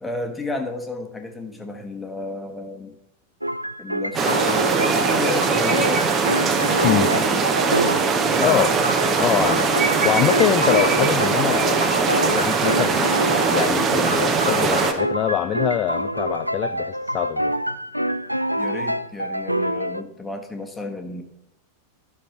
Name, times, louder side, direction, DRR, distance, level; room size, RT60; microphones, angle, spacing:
voice 1, 0.0-3.0 3.8-6.2 6.6-7.6 8.0-8.5 18.6-21.2, left 2 dB, 10° left, 4 dB, 1.3 m, -32 dB
sound 1, 3.4-8.2 8.4-13.8 14.1-20.0, equal, 90° right, 0.3 m, -26 dB
sound 2, 4.1-14.9, right 5 dB, 25° right, 1.0 m, -21 dB
voice 2, 9.2-13.1 13.5-17.5, left 11 dB, 35° left, 8 dB, 0.4 m, -24 dB
12.0 x 6.1 x 4.2 m, 0.78 s
figure-of-eight pair, 90°, 0 cm